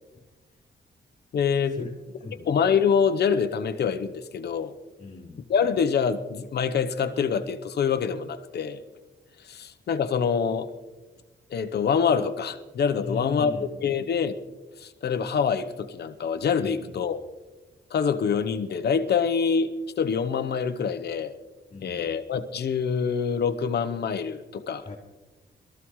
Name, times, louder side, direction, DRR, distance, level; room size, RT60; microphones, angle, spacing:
voice 1, 1.3-1.8 2.5-4.7 5.5-8.8 9.4-10.7 11.5-14.3 14.8-17.2 17.9-19.7 20.0-21.3 21.8-24.9, left 6 dB, 60° left, 10 dB, 0.9 m, -25 dB
voice 2, 5.0-5.4 13.0-13.7 16.6-17.1 21.7-22.1 24.8-25.0, left 3 dB, 40° left, -4 dB, 2.2 m, -37 dB
22.0 x 14.0 x 3.1 m, 1.2 s
wide cardioid pair, 145°, 19 cm